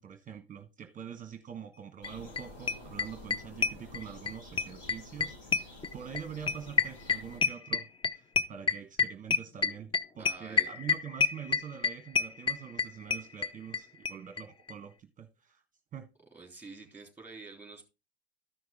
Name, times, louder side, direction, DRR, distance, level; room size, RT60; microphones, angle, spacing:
voice 1, 0.0-15.6 15.9-16.1, right 8 dB, 25° right, 1.1 m, -45 dB
sound 1, 2.0-7.4, left 2 dB, 55° left, 5.9 m, -50 dB
sound 2, 2.0-2.1 2.4-2.5 2.7-4.3 4.6-13.8 14.0-14.1 14.4-14.5 14.7-14.8, left 5 dB, 15° left, 0.6 m, -28 dB
voice 2, 10.2-10.7 16.3-17.9, right 3 dB, 5° right, 3.3 m, -48 dB
13.5 x 5.9 x 3.5 m
hypercardioid pair, 95°, 31 cm